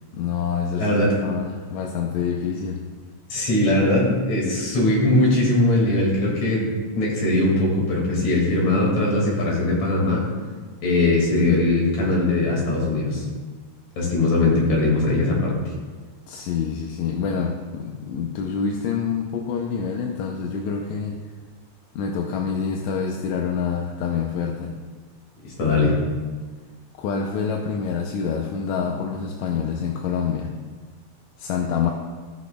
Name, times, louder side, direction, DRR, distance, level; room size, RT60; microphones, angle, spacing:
voice 1, 0.1-2.8 16.3-21.2 22.0-24.8 27.0-30.5 31.4-31.9, left 6 dB, 80° left, 1 dB, 2.0 m, -26 dB
voice 2, 0.7-1.1 3.3-6.7 6.9-10.2 10.8-13.2 14.0-15.6 25.4-25.9, left 2 dB, 65° left, -3 dB, 3.4 m, -20 dB
18.5 x 6.3 x 2.3 m, 1.4 s
omnidirectional pair, 3.4 m